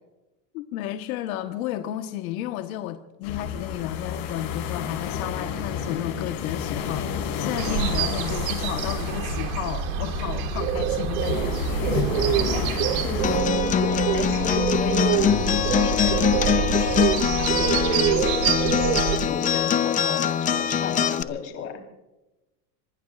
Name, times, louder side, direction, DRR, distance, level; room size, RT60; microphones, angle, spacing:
voice 1, 0.5-11.6, left 12 dB, 85° left, 6 dB, 1.3 m, -32 dB
sound 1, 3.2-13.4, left 7 dB, 65° left, 7.1 m, -31 dB
sound 2, 7.6-19.2, right 9 dB, 75° right, 2.3 m, -26 dB
voice 2, 11.6-18.7 19.1-21.8, left 6 dB, 35° left, 4 dB, 3.9 m, -35 dB
Acoustic guitar, 13.2-21.2, left 8 dB, 20° left, 0.6 m, -23 dB
26.0 x 22.5 x 2.5 m, 1.0 s
cardioid pair, 160°, 41 cm